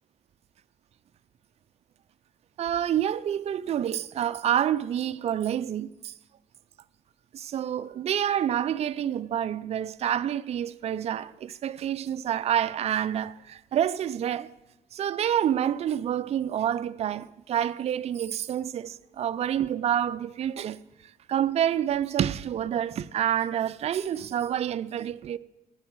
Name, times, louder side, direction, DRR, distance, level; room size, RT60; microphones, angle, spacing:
voice 1, 2.6-6.1 7.3-14.5 14.9-20.8 21.3-25.4, right 10 dB, 40° right, 0.4 m, -28 dB
17.0 x 8.9 x 4.6 m
cardioid pair, 110°, 17 cm